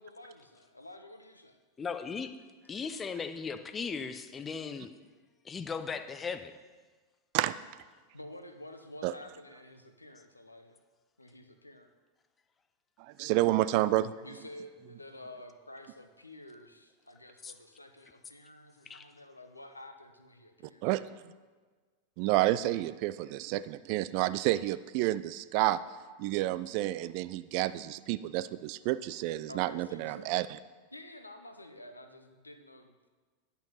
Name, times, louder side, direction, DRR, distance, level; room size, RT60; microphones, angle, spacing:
voice 1, 0.0-1.6 8.1-10.8 11.2-11.9 14.2-20.9 29.5-30.4 30.9-33.1, left 1 dB, 85° left, 6 dB, 0.8 m, -50 dB
voice 2, 1.8-2.3 2.6-4.9 5.4-6.5 17.4-17.5 18.9-19.1, left 5 dB, 20° left, 9 dB, 0.6 m, -37 dB
voice 3, 13.0-14.1 20.8-21.0 22.2-25.8 26.1-30.6, right 16 dB, 45° right, 15 dB, 0.3 m, -30 dB
10.5 x 5.8 x 5.6 m, 1.4 s
figure-of-eight pair, 90°, 0 cm